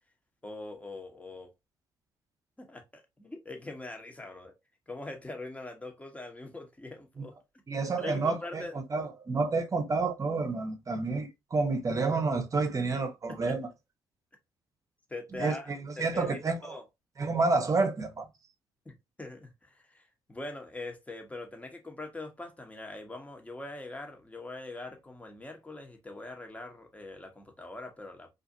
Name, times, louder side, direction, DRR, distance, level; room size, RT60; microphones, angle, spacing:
voice 1, 0.4-1.5 2.6-4.5 4.9-7.3 8.0-8.8 13.3-13.5 15.1-15.7 16.0-16.8 18.8-28.3, left 2 dB, 15° left, 1.0 m, -42 dB
voice 2, 7.7-8.6 8.9-13.7 15.4-16.6 17.2-18.3, right 3 dB, 35° right, 0.8 m, -29 dB
2.5 x 2.4 x 2.7 m
hypercardioid pair, 50°, 10 cm